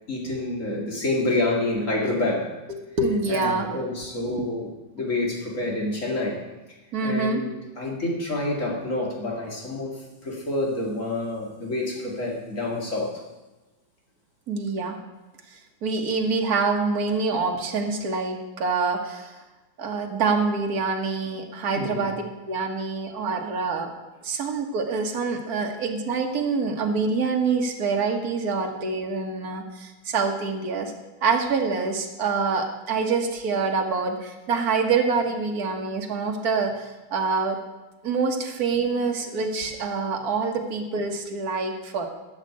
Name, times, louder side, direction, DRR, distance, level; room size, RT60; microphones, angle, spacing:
voice 1, 0.1-2.6 3.3-4.7 4.9-6.4 7.0-13.2 21.8-22.1, left 2 dB, 35° left, -1 dB, 2.6 m, -28 dB
voice 2, 2.7-3.7 4.2-4.5 6.9-7.4 14.5-15.0 15.8-19.3 19.8-23.9 24.2-30.9 31.2-37.6 38.0-42.1, right 4 dB, 50° right, 2 dB, 1.9 m, -26 dB
13.0 x 6.7 x 8.7 m, 1.1 s
omnidirectional pair, 2.3 m